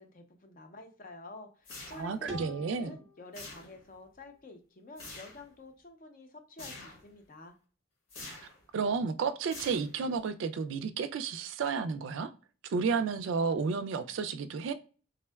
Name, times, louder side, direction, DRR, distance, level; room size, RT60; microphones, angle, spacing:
voice 1, 0.0-7.6, left 2 dB, 45° left, 0.5 m, -49 dB
sound 1, 1.6-2.3 3.3-4.0 5.0-5.5 6.6-7.1 8.1-8.6 9.5-10.2, left 3 dB, 90° left, 1.4 m, -46 dB
voice 2, 1.9-3.0 8.2-8.4 8.7-12.3 12.7-14.7, right 5 dB, 70° right, 0.3 m, -32 dB
sound 2, 2.3-5.1, equal, 5° right, 0.8 m, -50 dB
3.5 x 2.1 x 2.2 m
head